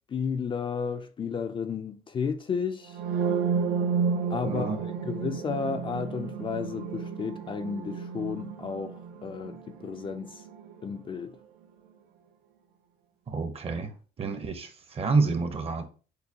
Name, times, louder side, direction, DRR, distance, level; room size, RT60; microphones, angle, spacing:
voice 1, 0.1-2.9 4.3-8.9 9.2-9.6 9.8-10.3 10.8-11.3, left 6 dB, 30° left, 0.4 m, -32 dB
sound 1, 2.9-10.7, right 6 dB, 75° right, 0.6 m, -31 dB
voice 2, 4.5-4.8 13.3-13.9 14.2-15.9, right 4 dB, 35° right, 0.8 m, -28 dB
6.5 x 2.2 x 2.8 m
cardioid pair, 110°, 17 cm